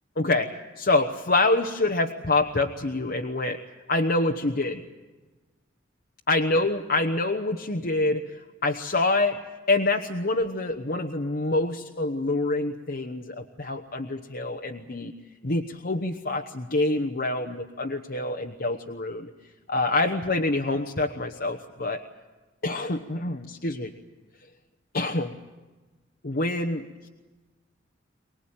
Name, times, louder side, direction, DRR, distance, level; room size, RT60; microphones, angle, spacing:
voice 1, 0.2-3.6 3.9-4.8 6.3-9.4 9.7-15.1 15.4-19.3 19.7-22.0 22.6-23.9 24.9-25.3 26.2-27.1, left 2 dB, 55° left, 4 dB, 1.1 m, -26 dB
24.5 x 20.0 x 8.9 m, 1.2 s
head